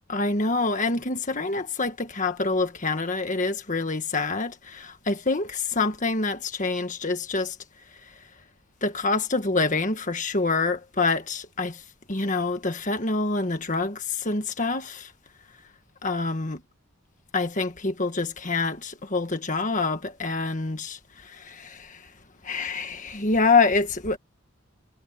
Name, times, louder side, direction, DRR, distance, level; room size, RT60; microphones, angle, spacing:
voice 1, 0.1-7.6 8.8-11.8 12.1-15.1 16.0-16.6 17.3-22.0 22.4-24.2, left 3 dB, 35° left, 1.6 m, -26 dB
head